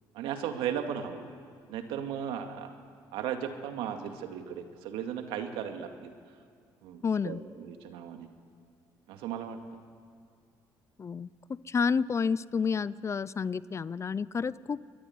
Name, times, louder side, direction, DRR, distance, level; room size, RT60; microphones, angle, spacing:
voice 1, 0.1-1.2 1.7-2.7 3.1-6.1 6.8-8.3 9.1-9.6, right 8 dB, 80° right, 6 dB, 2.3 m, -36 dB
voice 2, 7.0-7.4 11.0-11.3 11.7-14.9, left 5 dB, 30° left, 19 dB, 0.6 m, -30 dB
24.0 x 21.5 x 9.5 m, 2.1 s
supercardioid pair, 85°, 9 cm